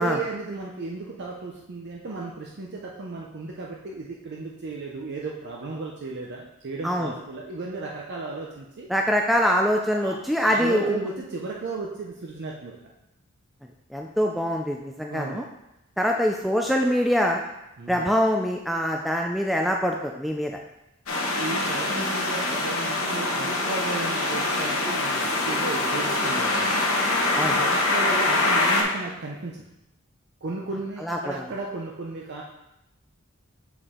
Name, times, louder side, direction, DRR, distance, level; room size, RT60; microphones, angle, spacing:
voice 1, 0.0-8.9 9.9-12.8 15.1-15.5 17.8-18.2 21.4-26.8 27.5-29.6 30.4-32.4, right 3 dB, 55° right, -2 dB, 0.7 m, -35 dB
voice 2, 8.9-11.0 13.9-15.4 16.0-17.4 17.9-20.5 27.4-27.6 31.0-31.4, equal, ahead, 1 dB, 0.3 m, -24 dB
sound 1, 21.1-28.8, left 2 dB, 70° left, 1.1 m, -24 dB
7.0 x 4.3 x 3.7 m, 0.90 s
head